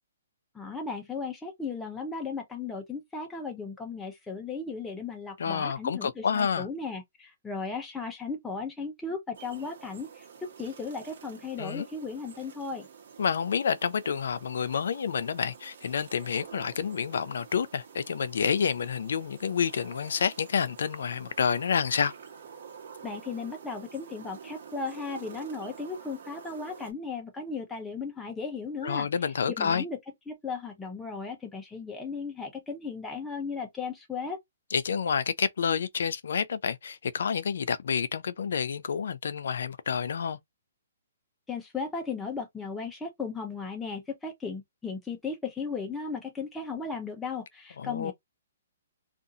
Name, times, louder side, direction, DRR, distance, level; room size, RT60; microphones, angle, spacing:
voice 1, 0.5-12.9 23.0-29.1 29.5-30.0 30.3-34.4 41.5-48.1, left 4 dB, 5° left, 0.5 m, -36 dB
voice 2, 5.4-6.7 11.6-11.9 13.2-22.1 28.8-29.8 34.7-40.4 47.8-48.1, left 6 dB, 70° left, 0.4 m, -29 dB
sound 1, 9.3-26.9, right 6 dB, 55° right, 1.1 m, -48 dB
2.5 x 2.4 x 2.6 m
hypercardioid pair, 165°, 0 cm